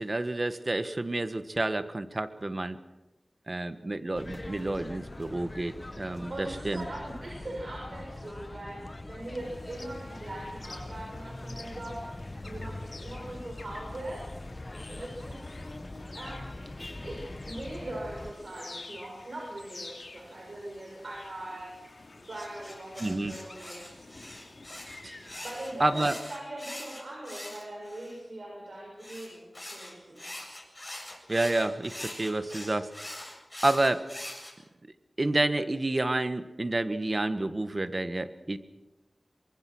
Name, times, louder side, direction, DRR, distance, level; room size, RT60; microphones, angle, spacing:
voice 1, 0.0-2.8 3.5-6.8 23.0-23.3 25.0-25.3 25.8-26.2 31.3-32.9 33.6-34.0 35.2-38.6, right 2 dB, 45° right, 11 dB, 1.5 m, -29 dB
sound 1, 4.1-18.3, left 2 dB, 40° left, 1.4 m, -42 dB
voice 2, 6.3-12.0 12.4-14.2 14.9-15.6 16.1-17.2 17.5-21.7 22.2-24.2 25.4-30.5, right 1 dB, 70° right, -1 dB, 6.6 m, -41 dB
sound 2, 9.4-26.0, left 3 dB, 70° left, 3.3 m, -49 dB
sound 3, 22.3-28.2 29.0-34.5, left 1 dB, 25° left, 7.8 m, -43 dB
24.5 x 22.0 x 6.3 m, 1.0 s
cardioid pair, 40°, 0 cm